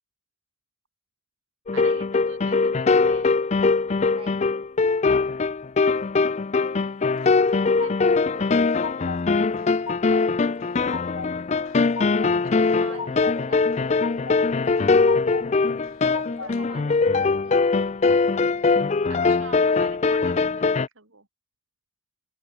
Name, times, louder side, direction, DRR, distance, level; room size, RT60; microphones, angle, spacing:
sound 1, 1.7-20.9, left 4 dB, 30° left, 0.4 m, -22 dB
voice 1, 1.7-3.4 7.8-8.5 12.1-13.7 15.6-16.5 16.8-16.9 19.1-21.3, right 4 dB, 65° right, 3.7 m, -46 dB
voice 2, 4.1-4.5 8.1-8.6 10.2-11.0 12.9-14.9 16.3-17.9, right 2 dB, 25° right, 5.7 m, -47 dB
sound 2, 7.2-8.2 8.5-9.3 9.6-10.2 10.6-11.3 11.7-12.4 12.7-13.4 13.7-14.4 14.8-15.5 15.8-16.6, left 5 dB, 75° left, 1.1 m, -36 dB
head